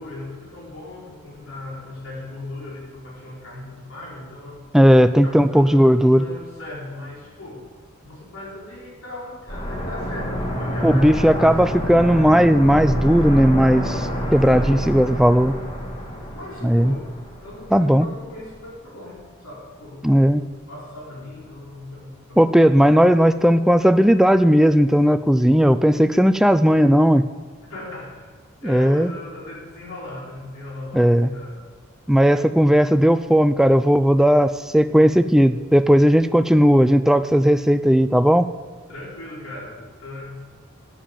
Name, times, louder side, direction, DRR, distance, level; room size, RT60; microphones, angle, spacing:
voice 1, 0.0-4.7 5.2-7.7 8.0-11.6 14.5-15.2 16.3-20.1 20.7-22.6 27.7-28.3 28.6-31.6 38.9-40.4, left 2 dB, 90° left, -4 dB, 4.1 m, -38 dB
voice 2, 4.7-6.2 10.8-15.5 16.6-16.9 17.7-18.1 20.0-20.4 22.4-27.2 28.6-29.1 30.9-31.3 32.1-38.5, equal, ahead, 11 dB, 0.3 m, -16 dB
sound 1, 9.5-18.2 18.5-18.6, equal, 25° left, 1.6 m, -28 dB
9.4 x 8.8 x 7.3 m, 1.5 s
head